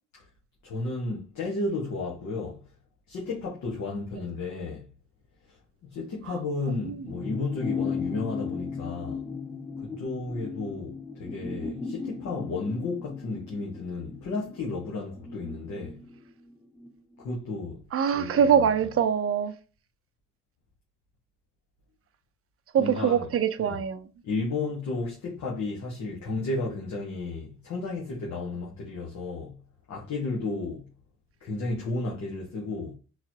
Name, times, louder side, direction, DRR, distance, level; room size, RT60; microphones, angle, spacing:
voice 1, 0.6-2.6 3.1-4.9 5.5-5.6 5.9-9.2 9.8-16.0 17.2-17.8 18.1-18.6 22.8-23.3 23.6-23.8 24.2-29.5 29.9-30.8 31.4-32.9, left 3 dB, 65° left, 1.3 m, -33 dB
voice 2, 6.7-7.1 17.9-19.6 22.7-24.1, right 8 dB, 50° right, 0.6 m, -24 dB
sound 1, 7.1-16.9 17.2-17.3, left 5 dB, 5° left, 0.3 m, -36 dB
3.8 x 3.2 x 2.9 m
cardioid pair, 90°, 30 cm